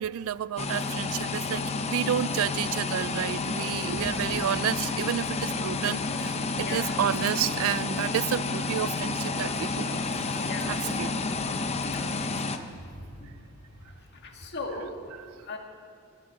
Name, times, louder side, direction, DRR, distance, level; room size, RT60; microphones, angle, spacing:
voice 1, 0.0-10.2 10.7-11.1, right 10 dB, 70° right, 19 dB, 0.3 m, -30 dB
sound 1, 0.6-12.6, left 3 dB, 30° left, 0.7 m, -30 dB
voice 2, 10.4-10.8 11.7-12.0 14.2-14.9 15.5-15.6, left 3 dB, 55° left, 2 dB, 1.9 m, -37 dB
19.5 x 7.7 x 8.0 m, 2.2 s
head